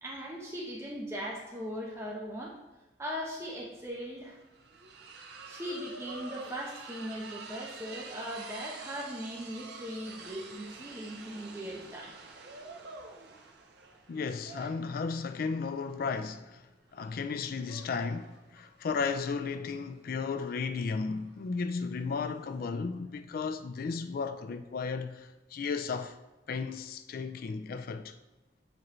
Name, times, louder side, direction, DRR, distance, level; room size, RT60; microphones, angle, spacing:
voice 1, 0.0-2.5 3.0-4.4 5.5-12.1, equal, 15° right, 0.8 m, -39 dB
sound 1, 3.4-3.5 3.8-22.6, right 4 dB, 65° right, 0.7 m, -48 dB
voice 2, 14.1-26.2 26.5-28.1, left 5 dB, 55° left, 0.3 m, -34 dB
7.3 x 5.0 x 3.1 m
head